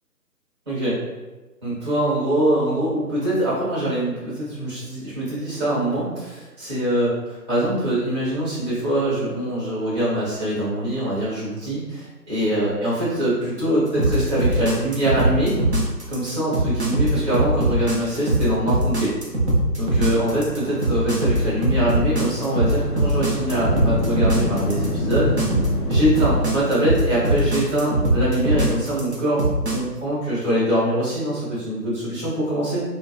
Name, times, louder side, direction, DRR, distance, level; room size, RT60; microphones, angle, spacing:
voice 1, 0.7-1.0 1.6-7.2 7.5-15.6 16.1-19.1 19.8-25.3 25.9-29.4 29.7-32.8, right 1 dB, 25° right, -9 dB, 1.0 m, -23 dB
sound 1, 14.0-29.8, right 2 dB, 45° right, 0.5 m, -21 dB
sound 2, 20.1-26.7, left 2 dB, 60° left, 1.0 m, -29 dB
2.6 x 2.0 x 2.3 m, 1.2 s
figure-of-eight pair, 155°, 49 cm